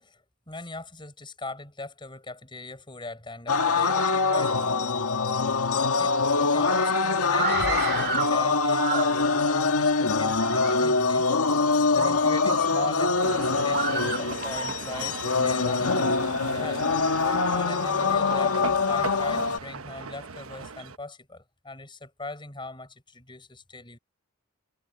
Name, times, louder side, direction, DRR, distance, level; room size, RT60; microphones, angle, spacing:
voice 1, 0.0-4.8 6.0-11.2 11.9-16.8 17.5-24.0, left 2 dB, 20° left, 6.0 m, -40 dB
sound 1, 3.5-19.6, left 4 dB, 80° left, 1.7 m, -24 dB
Screaming, 7.2-8.3 8.7-9.5 10.2-10.7 11.3-11.4 11.9-12.9 13.7-14.7, right 5 dB, 45° right, 2.1 m, -31 dB
sound 2, 13.2-21.0, right 4 dB, 65° right, 1.2 m, -37 dB
head